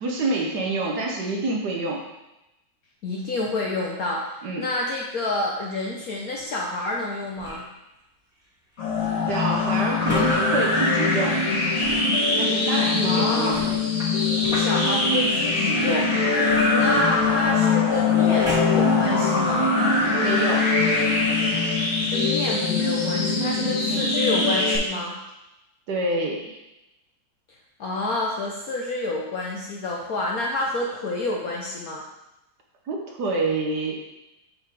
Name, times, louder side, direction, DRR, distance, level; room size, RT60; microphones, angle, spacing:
voice 1, 0.0-2.0 4.4-4.6 9.3-11.4 12.4-13.6 16.9-17.0 20.2-20.7 23.9-24.0 25.9-26.6 32.9-34.0, right 2 dB, 60° right, 0 dB, 1.3 m, -27 dB
voice 2, 3.0-7.6 13.0-13.6 14.5-16.1 16.7-19.7 22.1-25.2 27.8-32.0, left 2 dB, 65° left, -1 dB, 0.9 m, -28 dB
sound 1, 7.4-7.8 10.1-10.4 11.8-12.1 13.5-14.8 16.5-17.5 18.4-18.9 19.6-19.7, equal, ahead, 1.5 m, -33 dB
sound 2, 8.8-24.8, left 3 dB, 40° left, 1.8 m, -22 dB
5.8 x 5.6 x 3.5 m, 0.94 s
omnidirectional pair, 2.2 m